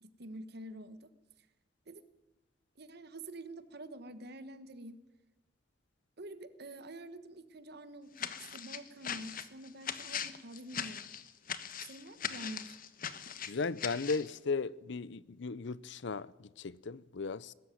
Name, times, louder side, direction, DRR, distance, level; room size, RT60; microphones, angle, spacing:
voice 1, 0.0-1.1 1.9-2.0 2.8-5.0 6.2-11.1 11.8-12.8, right 1 dB, 60° right, 1.3 m, -47 dB
sound 1, 8.2-14.3, left 8 dB, 50° left, 1.2 m, -40 dB
voice 2, 13.5-17.5, left 4 dB, 70° left, 0.6 m, -36 dB
21.0 x 13.5 x 9.2 m
head